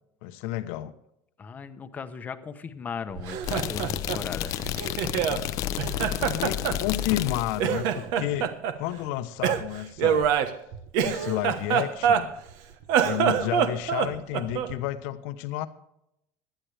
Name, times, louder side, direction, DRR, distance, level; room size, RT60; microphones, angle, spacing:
voice 1, 0.2-0.9 6.3-8.5 8.8-10.2 11.0-12.3 13.0-15.7, left 14 dB, 75° left, 10 dB, 0.9 m, -31 dB
voice 2, 1.4-4.5, left 6 dB, 20° left, 9 dB, 0.9 m, -37 dB
Laughter, 3.1-5.4 5.8-7.3 7.6-8.8 9.4-12.5 12.8-14.8, right 8 dB, 60° right, 1.2 m, -26 dB
sound 1, 3.4-7.7, left 13 dB, 50° left, 0.6 m, -31 dB
18.0 x 11.5 x 3.4 m, 0.80 s
cardioid pair, 160°, 8 cm